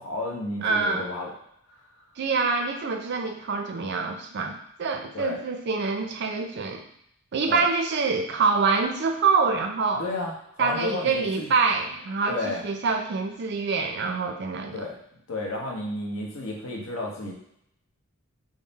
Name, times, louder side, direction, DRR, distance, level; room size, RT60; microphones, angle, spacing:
voice 1, 0.0-1.3 5.1-5.4 7.5-7.6 10.0-11.5 12.3-12.6 14.7-15.0 15.3-17.3, left 2 dB, 70° left, -1 dB, 0.9 m, -32 dB
voice 2, 0.6-1.1 2.2-6.8 7.3-10.0 10.6-14.8, right 4 dB, 50° right, 4 dB, 0.4 m, -25 dB
3.7 x 2.1 x 4.0 m, 0.74 s
head